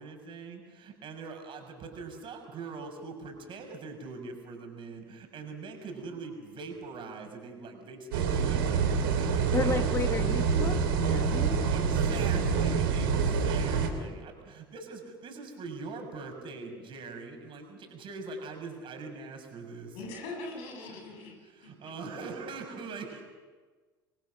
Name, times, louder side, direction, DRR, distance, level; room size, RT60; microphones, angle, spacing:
voice 1, 0.0-9.8 11.7-20.0 20.9-23.2, right 4 dB, 45° right, 4 dB, 6.2 m, -42 dB
sound 1, 8.1-13.9, right 6 dB, 70° right, 3.2 m, -26 dB
voice 2, 9.5-11.6, left 5 dB, 25° left, 11 dB, 1.0 m, -33 dB
voice 3, 19.9-21.9, left 2 dB, 60° left, 2 dB, 7.9 m, -42 dB
28.0 x 22.5 x 6.4 m, 1.4 s
figure-of-eight pair, 65°, 12 cm